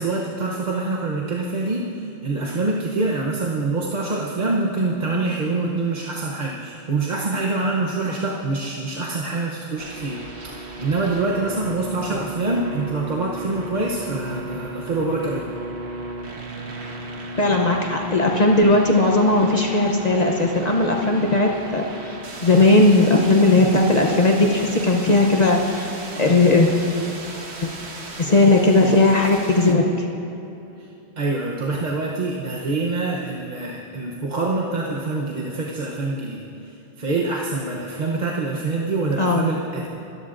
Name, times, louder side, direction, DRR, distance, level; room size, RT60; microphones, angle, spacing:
voice 1, 0.0-10.2 10.6-15.5 30.8-30.9 31.2-39.9, right 3 dB, 45° right, -3 dB, 1.0 m, -25 dB
sound 1, 9.8-29.7, right 1 dB, 80° right, 1.5 m, -35 dB
voice 2, 17.4-22.2 22.4-25.9 26.2-26.7 28.2-30.1 39.2-39.5, left 2 dB, 40° left, 0 dB, 0.8 m, -17 dB
22.0 x 13.5 x 2.5 m, 2.9 s
omnidirectional pair, 1.1 m